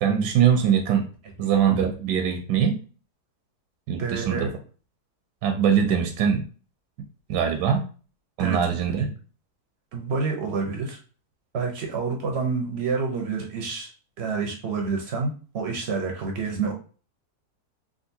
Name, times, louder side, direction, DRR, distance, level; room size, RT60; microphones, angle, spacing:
voice 1, 0.0-1.1 1.4-2.8 3.9-4.5 5.4-6.4 7.3-7.8 8.4-9.1, right 8 dB, 85° right, 5 dB, 1.2 m, -22 dB
voice 2, 4.0-4.5 8.4-8.8 9.9-11.0 11.5-13.9 14.2-16.7, right 4 dB, 60° right, 2 dB, 0.7 m, -28 dB
3.6 x 2.5 x 2.6 m, 0.38 s
omnidirectional pair, 1.8 m